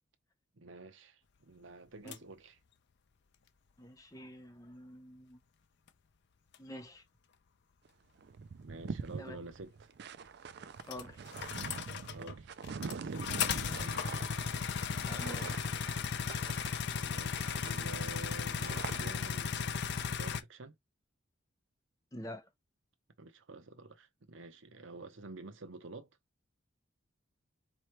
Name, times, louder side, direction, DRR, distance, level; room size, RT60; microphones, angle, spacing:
voice 1, 0.5-2.6 8.6-9.9 12.1-13.3 13.6-14.1 15.1-15.6 16.3-20.8 23.2-26.1, right 2 dB, 75° right, 0.9 m, -49 dB
sound 1, 2.1-2.2 6.5-6.6 10.9-12.3 12.6-20.4, left 6 dB, 60° left, 0.5 m, -35 dB
voice 2, 3.8-5.4 6.6-7.0 9.2-9.4 10.9-11.2 15.0-15.7 22.1-22.5, left 1 dB, 15° left, 0.8 m, -47 dB
sound 2, 7.9-8.0 8.2-17.1 17.4-19.4, right 5 dB, 60° right, 0.4 m, -44 dB
4.3 x 3.1 x 3.2 m
head